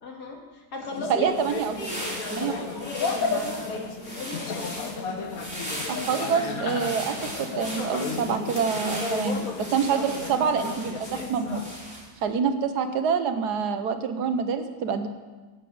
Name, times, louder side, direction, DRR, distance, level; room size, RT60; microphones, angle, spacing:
voice 1, 0.0-1.4 1.8-2.5 2.8-3.9 4.2-5.0, left 2 dB, 80° left, 1 dB, 2.3 m, -36 dB
sound 1, 0.9-11.7, left 4 dB, 60° left, 1.5 m, -33 dB
voice 2, 1.1-1.8 2.3-2.5 3.1-3.4 5.9-11.6 12.2-15.1, right 6 dB, 80° right, 8 dB, 1.5 m, -26 dB
sound 2, 1.2-12.2, equal, 5° right, 3.5 m, -38 dB
11.0 x 7.5 x 8.0 m, 1.3 s
omnidirectional pair, 1.7 m